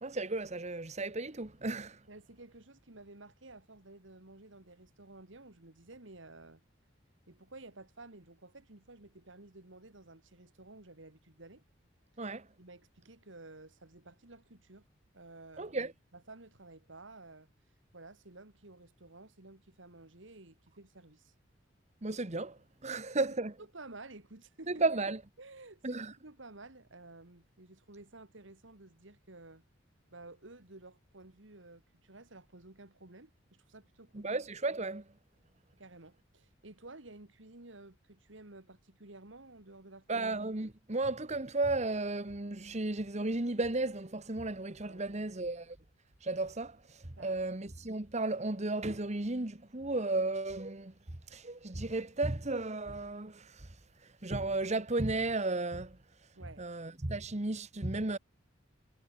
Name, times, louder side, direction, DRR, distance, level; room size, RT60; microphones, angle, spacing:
voice 1, 0.0-2.0 12.2-12.5 15.6-15.9 22.0-23.5 24.7-25.2 25.8-26.1 34.1-35.0 40.1-45.8 46.2-46.8 47.2-50.9 51.3-53.7 54.2-56.0 56.6-58.2, right 2 dB, 35° right, 1.4 m, -34 dB
voice 2, 2.1-6.6 7.3-11.6 12.6-14.9 15.1-15.8 16.1-17.5 17.9-21.3 23.6-24.8 25.4-29.6 30.1-34.3 35.8-40.2 44.8-45.4 47.2-47.5 56.4-56.7, right 2 dB, 70° right, 2.4 m, -53 dB
head